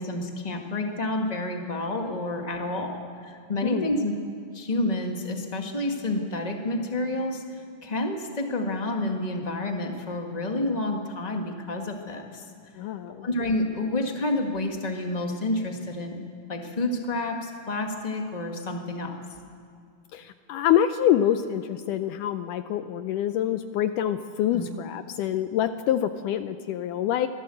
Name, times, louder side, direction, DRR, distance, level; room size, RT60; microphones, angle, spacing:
voice 1, 0.0-4.1 4.5-7.4 7.8-12.4 13.2-19.2 24.5-24.6, left 2 dB, 55° left, 3 dB, 0.4 m, -29 dB
voice 2, 3.6-4.0 12.8-13.3 20.1-27.3, left 10 dB, 80° left, 10 dB, 2.0 m, -26 dB
24.5 x 16.0 x 7.7 m, 2.3 s
omnidirectional pair, 4.1 m